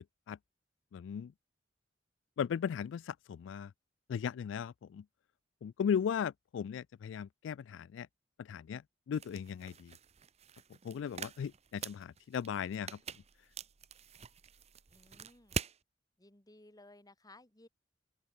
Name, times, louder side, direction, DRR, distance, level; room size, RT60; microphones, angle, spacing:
voice 1, 0.9-1.3 2.4-3.7 4.1-5.0 5.6-8.1 8.4-9.9 10.8-13.0, left 7 dB, 75° left, 0.3 m, -37 dB
sound 1, 9.1-15.8, right 6 dB, 35° right, 0.7 m, -45 dB
voice 2, 14.9-15.6 16.2-17.7, left 2 dB, 20° left, 2.6 m, -59 dB
open air
head